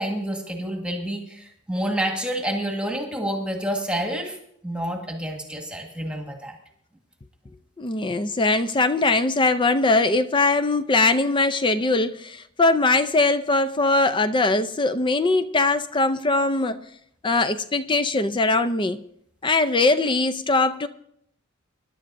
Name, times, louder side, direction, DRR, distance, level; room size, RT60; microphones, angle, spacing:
voice 1, 0.0-4.4 4.6-6.6, right 1 dB, 5° right, 1.5 m, -28 dB
voice 2, 7.8-16.8 17.2-19.0 19.4-20.9, left 3 dB, 20° left, 0.5 m, -21 dB
25.5 x 11.0 x 2.6 m
head